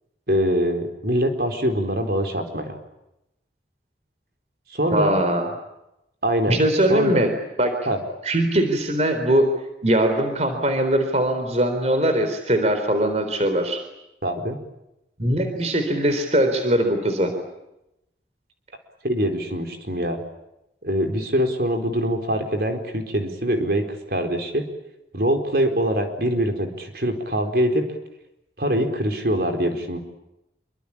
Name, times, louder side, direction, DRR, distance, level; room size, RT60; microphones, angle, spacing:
voice 1, 0.3-2.8 4.7-5.1 6.2-6.6 6.9-7.3 7.9-8.0 14.2-14.6 19.0-20.2 20.8-24.6 25.1-27.9 28.6-30.0, equal, 55° right, 5 dB, 4.5 m, -23 dB
voice 2, 4.9-5.5 6.5-7.3 7.6-7.7 8.2-9.5 9.8-13.8 15.2-17.3, right 1 dB, 40° right, 7 dB, 3.9 m, -21 dB
27.0 x 25.0 x 8.7 m, 0.88 s
head